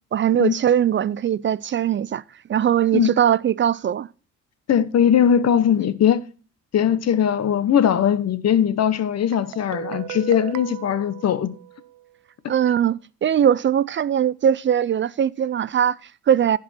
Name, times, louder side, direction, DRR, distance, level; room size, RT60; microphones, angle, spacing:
voice 1, 0.1-2.2 2.5-4.1 12.5-16.6, right 9 dB, 40° right, 0.4 m, -20 dB
voice 2, 4.7-6.2 6.7-11.5, left 9 dB, 55° left, 1.1 m, -20 dB
Guitar, 9.3-12.1, right 16 dB, 85° right, 0.6 m, -36 dB
15.0 x 5.2 x 4.3 m
cardioid pair, 90°, 30 cm